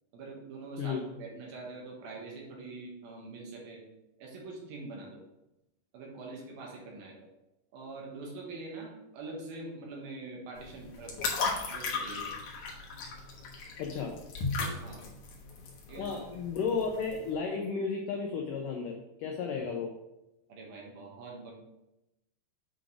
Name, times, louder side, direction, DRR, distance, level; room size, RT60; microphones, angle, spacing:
voice 1, 0.1-3.8 4.2-5.2 5.9-7.3 7.7-11.3 11.7-12.3 14.8-15.0 15.9-16.3 20.5-21.5, right 3 dB, 70° right, -2 dB, 3.0 m, -44 dB
sound 1, 10.6-17.3, left 4 dB, 65° left, 2.2 m, -36 dB
voice 2, 13.8-14.1 16.0-19.9, left 5 dB, 85° left, 2 dB, 1.8 m, -33 dB
8.2 x 3.9 x 4.9 m, 0.92 s
omnidirectional pair, 4.7 m